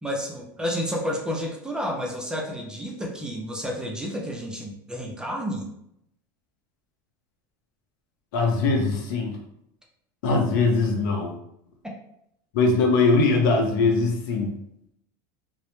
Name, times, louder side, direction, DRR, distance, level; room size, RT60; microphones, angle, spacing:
voice 1, 0.0-5.7, equal, 5° right, -1 dB, 0.4 m, -30 dB
voice 2, 8.3-9.4 10.2-11.4 12.5-14.5, left 3 dB, 75° left, 1 dB, 0.6 m, -21 dB
2.1 x 2.0 x 2.9 m, 0.77 s
supercardioid pair, 130°, 11 cm